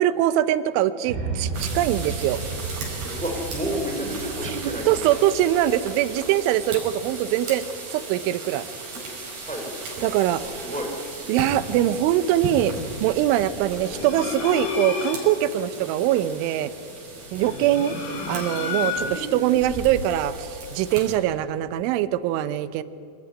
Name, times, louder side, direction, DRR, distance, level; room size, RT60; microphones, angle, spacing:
voice 1, 0.0-2.4 4.4-7.6 7.9-8.7 10.0-10.4 11.3-12.7 13.0-16.7 17.3-18.0 18.3-22.8, right 12 dB, 85° right, 13 dB, 3.2 m, -23 dB
sound 1, 1.0-7.2, right 4 dB, 70° right, 6.1 m, -34 dB
sound 2, 1.5-21.2, right 3 dB, 55° right, 6.8 m, -37 dB
voice 2, 3.2-5.1 9.4-9.7 10.3-10.9 11.2-11.4 17.3-17.5 19.0-19.5, equal, ahead, 1 dB, 3.8 m, -31 dB
sound 3, 13.9-15.4 17.3-19.4, left 5 dB, 80° left, 4.7 m, -30 dB
26.5 x 19.0 x 9.9 m, 2.5 s
omnidirectional pair, 5.4 m